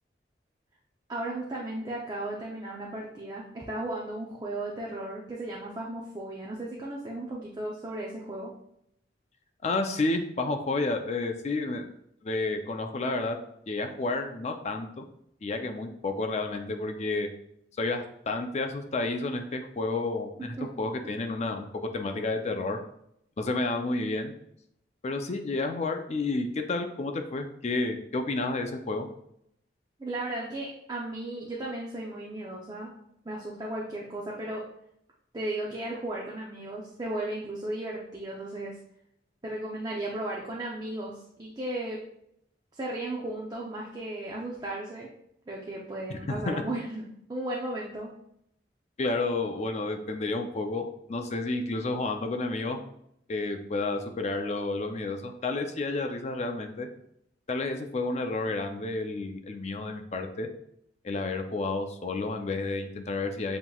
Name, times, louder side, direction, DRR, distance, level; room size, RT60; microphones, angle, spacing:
voice 1, 1.1-8.5 20.6-20.7 21.0-21.1 30.0-32.9 33.2-34.6 35.3-38.8 39.4-42.0 42.7-45.1 45.5-47.0 47.3-48.1, right 1 dB, 20° right, -4 dB, 0.6 m, -35 dB
voice 2, 9.6-11.9 12.2-13.4 13.7-15.0 15.4-17.3 17.8-22.8 23.4-24.3 25.0-29.1 46.1-46.6 49.0-52.8 53.3-56.9 57.5-60.5 61.0-63.6, left 3 dB, 35° left, 5 dB, 0.4 m, -31 dB
7.2 x 2.9 x 2.3 m, 0.74 s
head